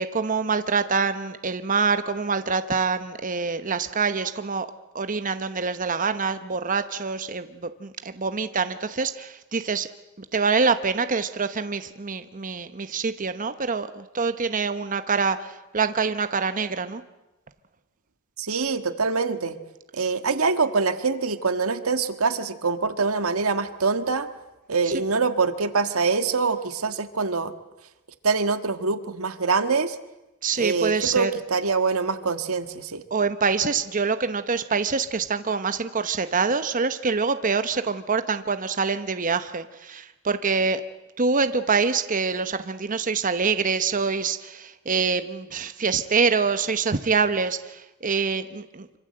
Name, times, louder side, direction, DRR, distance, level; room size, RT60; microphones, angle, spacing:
voice 1, 0.0-4.7 4.9-9.9 10.2-17.0 24.8-24.9 30.4-31.3 33.1-40.8 41.2-48.9, right 5 dB, 40° right, 10 dB, 0.9 m, -25 dB
voice 2, 18.4-19.6 19.9-24.3 24.7-27.5 28.2-30.0 30.6-33.0, right 4 dB, 90° right, 9 dB, 1.6 m, -24 dB
26.0 x 25.0 x 7.8 m, 1.0 s
head